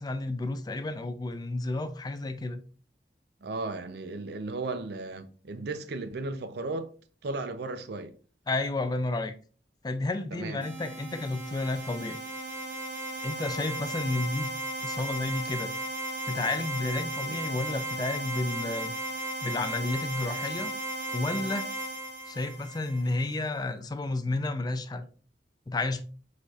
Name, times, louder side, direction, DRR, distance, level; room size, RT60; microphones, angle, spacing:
voice 1, 0.0-2.6 8.5-9.3 9.8-12.2 13.2-14.5 14.8-15.7 16.3-20.7 21.1-21.7 22.3-25.1 25.7-26.0, left 2 dB, 25° left, 0.4 m, -31 dB
voice 2, 3.4-6.9 7.2-8.1 10.3-10.7 17.2-17.4, right 3 dB, 65° right, 0.5 m, -35 dB
sound 1, 10.6-23.3, right 1 dB, 45° right, 1.3 m, -35 dB
4.9 x 4.1 x 2.4 m
head